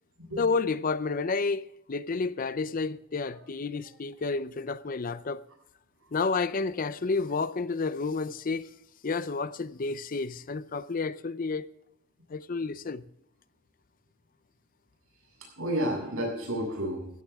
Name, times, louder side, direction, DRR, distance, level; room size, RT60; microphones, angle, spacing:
voice 1, 0.4-5.5 6.1-8.7 9.0-11.7 12.3-13.1, left 4 dB, 40° left, 0.5 m, -30 dB
voice 2, 15.6-17.2, equal, 85° right, 7.3 m, -31 dB
15.5 x 14.5 x 3.6 m
head